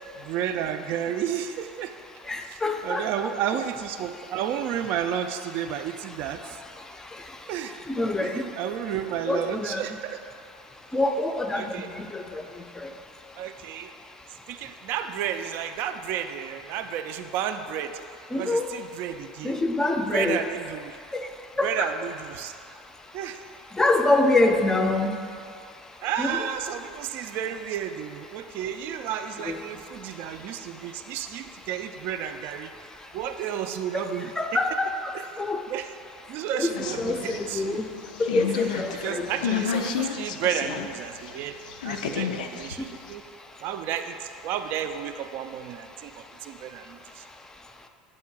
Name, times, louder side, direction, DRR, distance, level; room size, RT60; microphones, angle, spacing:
voice 1, 0.2-1.9 2.4-6.6 7.5-7.8 8.2-10.3 11.5-11.9 13.4-13.9 14.5-18.0 18.3-19.5 20.1-21.0 21.6-22.6 23.1-23.4 26.0-32.7 33.1-34.6 35.1-35.3 35.7-35.9 36.3-37.8 39.0-41.5 41.8-43.2 43.6-47.2, right 9 dB, 55° right, 8 dB, 0.3 m, -32 dB
voice 2, 2.3-3.1 7.9-8.4 9.3-9.8 10.9-11.6 12.0-12.4 18.3-18.7 19.4-20.4 21.6-21.9 23.8-25.2 26.2-26.5 29.5-29.6 33.9-34.0 34.4-35.0 35.4-35.6 36.5-37.9 38.2-39.7, left 2 dB, 15° left, 5 dB, 0.4 m, -25 dB
sound 1, 36.8-40.9 41.3-43.1, left 7 dB, 75° left, 0.3 m, -31 dB
7.3 x 2.8 x 4.6 m, 2.4 s
hypercardioid pair, 80°, 4 cm